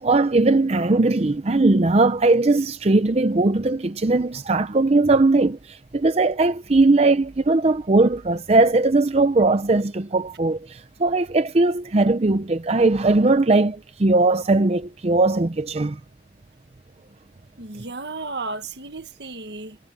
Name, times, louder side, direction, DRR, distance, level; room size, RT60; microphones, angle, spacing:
voice 1, 0.0-16.0, right 2 dB, 35° right, 0.6 m, -19 dB
voice 2, 17.6-19.8, right 3 dB, 70° right, 1.7 m, -33 dB
head